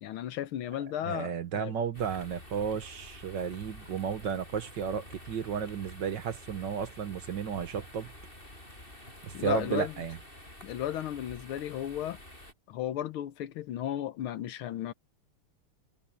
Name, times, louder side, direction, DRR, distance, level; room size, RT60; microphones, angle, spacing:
voice 1, 0.0-1.7 9.3-9.9 10.6-12.2 12.7-14.9, left 11 dB, 75° left, 1.6 m, -34 dB
voice 2, 1.1-8.1 9.2-10.2, right 7 dB, 60° right, 1.6 m, -33 dB
sound 1, 1.9-12.5, left 1 dB, 25° left, 7.5 m, -49 dB
omnidirectional pair, 2.4 m